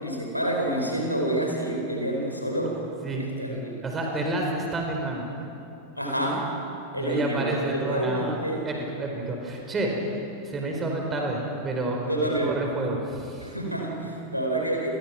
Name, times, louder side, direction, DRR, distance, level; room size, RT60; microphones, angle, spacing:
voice 1, 0.0-2.8 3.2-3.8 6.0-6.5 6.9-8.6 12.1-12.5 13.4-14.9, right 1 dB, 90° left, 0 dB, 5.0 m, -28 dB
voice 2, 3.0-5.2 7.0-8.4 8.6-9.9 10.4-13.5, right 2 dB, 20° right, 1 dB, 4.8 m, -30 dB
29.5 x 22.0 x 6.1 m, 2.9 s
figure-of-eight pair, 90°, 0 cm